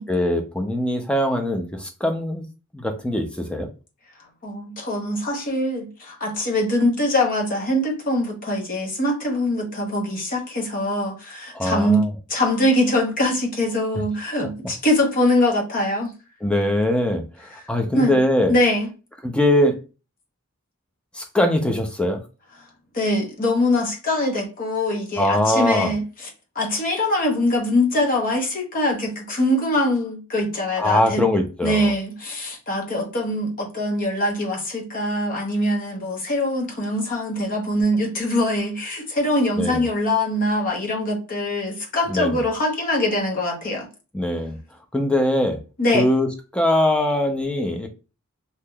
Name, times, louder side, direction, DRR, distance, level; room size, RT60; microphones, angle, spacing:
voice 1, 0.1-2.4 2.7-3.7 11.5-12.1 14.4-14.5 16.4-17.2 17.7-18.5 19.2-19.8 21.1-22.2 25.2-25.9 30.8-31.9 39.6-39.8 42.1-42.4 44.1-44.6 44.9-45.6 45.9-46.3 46.5-47.9, left 1 dB, 5° left, 0.4 m, -21 dB
voice 2, 4.4-16.1 17.9-18.2 18.5-18.9 22.9-26.3 26.6-31.3 31.6-43.9 45.8-46.1, left 1 dB, 40° left, 0.8 m, -23 dB
3.5 x 2.8 x 2.2 m
head